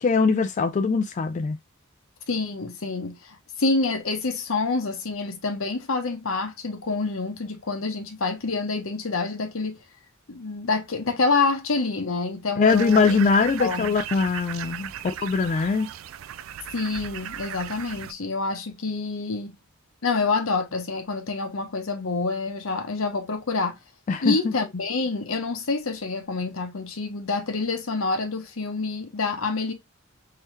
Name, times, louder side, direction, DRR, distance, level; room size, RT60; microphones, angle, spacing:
voice 1, 0.0-1.6 12.6-15.9 24.1-24.5, left 4 dB, 35° left, 0.3 m, -22 dB
voice 2, 2.3-3.2 3.6-9.8 10.3-13.2 13.6-14.0 16.7-19.6 20.0-23.8 24.2-29.7, left 3 dB, 85° left, 0.9 m, -27 dB
sound 1, 12.7-18.1, right 10 dB, 70° right, 0.3 m, -37 dB
3.7 x 2.8 x 3.1 m
head